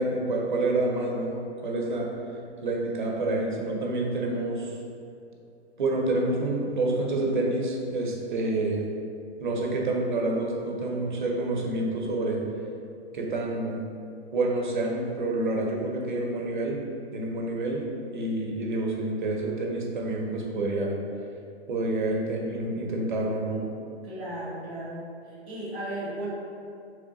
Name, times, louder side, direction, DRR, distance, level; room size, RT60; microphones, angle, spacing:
voice 1, 0.0-2.1 2.6-4.8 5.8-8.8 9.4-12.4 13.1-13.8 14.3-16.8 17.1-21.0 21.7-23.6, right 2 dB, 45° right, 0 dB, 0.6 m, -28 dB
voice 2, 24.0-25.0 25.5-26.3, right 1 dB, 10° left, -21 dB, 0.4 m, -35 dB
3.7 x 3.4 x 3.7 m, 2.5 s
hypercardioid pair, 180°, 34 cm